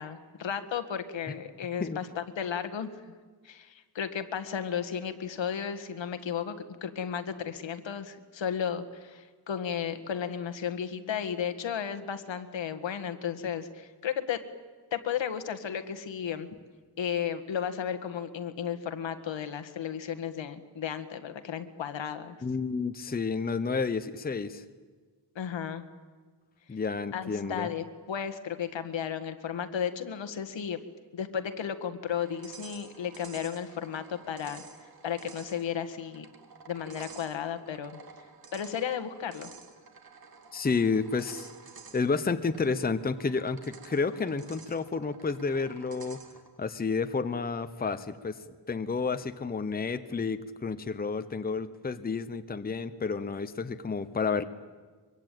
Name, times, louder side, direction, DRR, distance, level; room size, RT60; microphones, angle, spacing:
voice 1, 0.0-2.9 3.4-6.6 6.8-14.4 14.9-16.5 17.0-22.4 25.4-25.8 27.1-30.8 31.1-34.6 35.0-36.3 36.7-38.0 38.5-39.5, left 8 dB, 80° left, 9 dB, 1.8 m, -34 dB
voice 2, 22.4-24.6 26.7-27.7 40.5-41.5 41.9-46.2 46.6-48.4 48.7-54.4, left 4 dB, 20° left, 10 dB, 0.9 m, -30 dB
sound 1, 32.1-46.6, right 5 dB, 55° right, 2.3 m, -51 dB
23.5 x 23.5 x 9.2 m, 1.4 s
wide cardioid pair, 145°, 44 cm